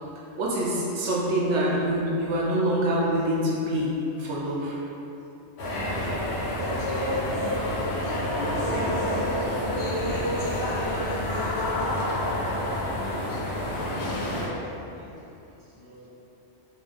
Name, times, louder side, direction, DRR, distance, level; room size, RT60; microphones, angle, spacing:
voice 1, 0.4-3.9 4.2-4.8, right 1 dB, 90° right, -4 dB, 1.0 m, -25 dB
sound 1, 5.6-14.5, left 1 dB, 70° left, 1.1 m, -28 dB
voice 2, 8.5-9.7 12.1-13.9 14.2-15.2 15.6-16.1, right 1 dB, 40° right, -10 dB, 1.3 m, -44 dB
5.7 x 2.5 x 3.4 m, 2.9 s
omnidirectional pair, 1.2 m